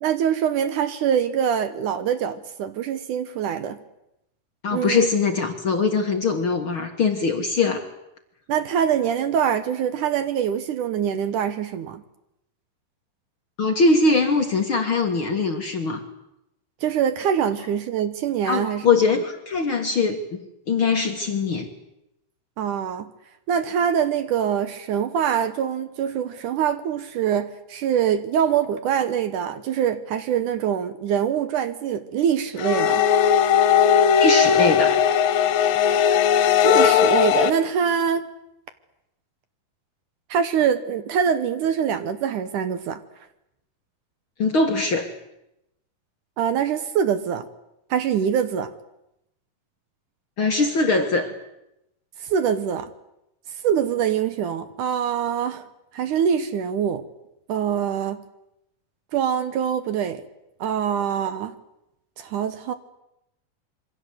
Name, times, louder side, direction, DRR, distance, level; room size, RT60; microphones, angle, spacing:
voice 1, 0.0-3.8 4.7-5.1 8.5-12.0 16.8-18.8 22.6-23.1 23.5-33.1 36.6-38.2 40.3-43.0 46.4-47.5 47.9-48.7 52.2-52.9 53.6-55.7 55.9-57.0 57.5-58.2 59.1-60.2 60.6-61.6 62.2-62.7, right 8 dB, 65° right, 2.3 m, -24 dB
voice 2, 4.6-7.9 13.6-16.0 18.5-20.4 20.7-21.7 34.2-35.0 44.4-45.1 50.4-51.3, left 4 dB, 45° left, 1.9 m, -22 dB
sound 1, 32.6-37.5, left 8 dB, 75° left, 2.9 m, -18 dB
27.0 x 24.0 x 8.1 m
omnidirectional pair, 4.3 m